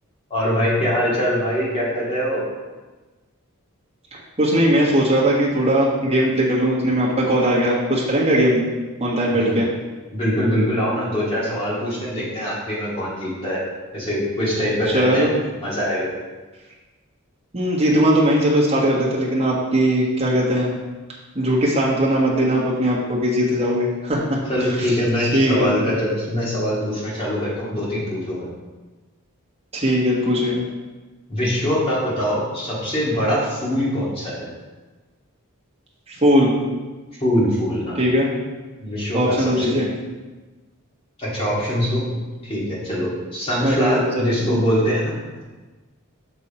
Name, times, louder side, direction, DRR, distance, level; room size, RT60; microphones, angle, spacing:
voice 1, 0.3-2.4 9.3-9.5 10.1-13.6 13.9-15.3 15.6-16.1 24.5-28.5 31.3-34.5 37.2-38.0 38.8-39.8 41.2-42.1 42.4-45.1, equal, 25° left, -6 dB, 2.2 m, -23 dB
voice 2, 4.1-8.6 9.0-9.7 14.9-15.3 17.5-20.7 21.3-24.4 24.8-24.9 25.3-25.7 29.7-30.6 36.1-36.6 37.9-38.3 39.1-39.9 43.6-44.6, equal, 30° right, -5 dB, 1.4 m, -19 dB
6.3 x 5.5 x 4.3 m, 1.2 s
head